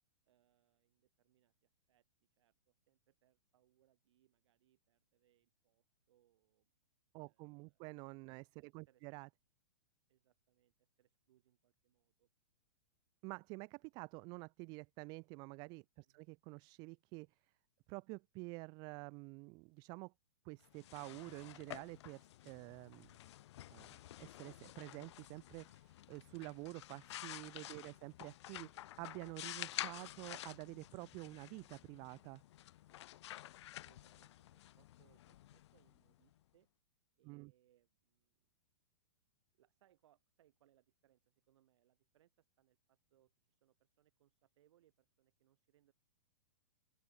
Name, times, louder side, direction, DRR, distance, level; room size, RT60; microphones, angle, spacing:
voice 1, 0.3-2.0 2.3-6.7 7.2-7.8 8.6-9.1 10.1-12.3 16.0-16.3 27.8-28.0 33.6-36.7 37.2-38.5 39.5-45.9, right 13 dB, 60° right, 3.8 m, -76 dB
voice 2, 7.1-9.3 13.2-17.5 17.9-20.1 20.4-23.2 23.7-32.4 37.2-37.5, right 30 dB, 25° right, 0.4 m, -49 dB
sound 1, 20.6-36.3, left 14 dB, 60° left, 0.4 m, -51 dB
open air
hypercardioid pair, 150°, 17 cm